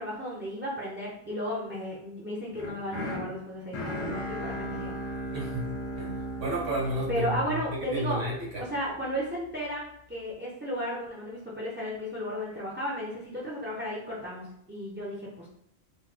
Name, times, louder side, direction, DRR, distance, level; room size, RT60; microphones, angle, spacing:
voice 1, 0.0-5.0 7.1-8.2 8.6-15.5, equal, 15° right, -5 dB, 0.4 m, -34 dB
sound 1, 2.5-8.7, equal, 70° left, 1.0 m, -37 dB
voice 2, 5.3-6.2 6.4-8.7, right 1 dB, 75° right, -4 dB, 1.3 m, -32 dB
3.2 x 2.1 x 3.2 m, 0.72 s
omnidirectional pair, 1.1 m